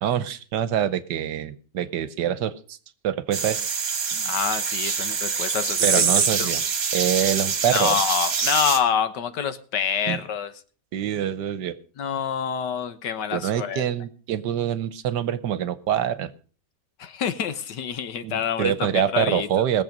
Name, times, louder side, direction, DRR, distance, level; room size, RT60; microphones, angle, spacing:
voice 1, 0.0-2.8 3.0-3.6 4.1-4.3 5.8-6.6 6.9-8.0 10.1-10.2 10.9-11.8 13.3-16.3 18.2-19.8, right 10 dB, 80° right, 14 dB, 1.4 m, -25 dB
sound 1, 3.3-8.8, right 6 dB, 55° right, 1.8 m, -25 dB
voice 2, 4.2-6.5 7.7-10.5 12.0-13.8 17.0-19.5, left 8 dB, 80° left, 11 dB, 1.7 m, -27 dB
20.0 x 7.4 x 5.2 m, 0.40 s
omnidirectional pair, 1.9 m